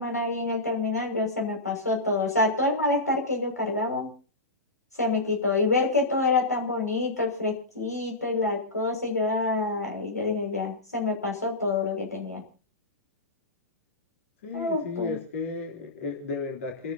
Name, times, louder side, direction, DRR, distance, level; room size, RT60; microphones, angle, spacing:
voice 1, 0.0-4.1 5.0-12.4 14.5-15.2, left 3 dB, 90° left, 1 dB, 6.1 m, -27 dB
voice 2, 14.4-16.9, left 4 dB, 60° left, 0 dB, 3.3 m, -33 dB
29.5 x 14.0 x 2.9 m, 0.38 s
figure-of-eight pair, 105°, 8 cm